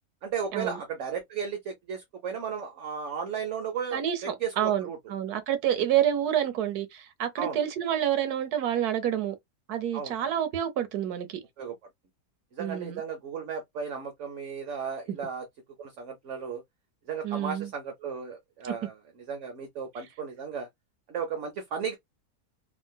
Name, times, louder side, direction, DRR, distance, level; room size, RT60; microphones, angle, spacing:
voice 1, 0.2-5.0 7.4-7.6 9.9-10.2 11.6-11.7 12.5-15.4 15.8-16.6 17.1-18.9 19.3-20.7 21.1-21.9, right 6 dB, 60° right, 0.9 m, -35 dB
voice 2, 3.9-9.3 9.7-11.4 12.6-13.0 15.1-15.2 17.2-17.7 18.7-18.8, right 10 dB, 75° right, 1.3 m, -28 dB
3.6 x 2.4 x 2.2 m
omnidirectional pair, 1.6 m